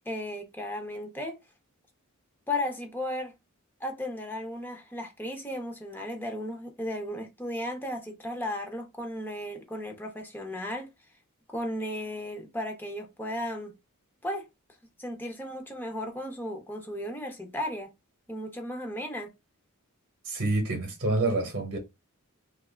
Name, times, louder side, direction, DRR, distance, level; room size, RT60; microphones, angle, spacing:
voice 1, 0.1-1.4 2.5-3.3 3.8-10.9 11.5-13.7 14.2-14.4 15.0-17.9 18.3-19.3, left 1 dB, 10° left, 0.6 m, -35 dB
voice 2, 20.2-21.8, right 2 dB, 50° right, 0.8 m, -27 dB
3.3 x 2.4 x 2.4 m
head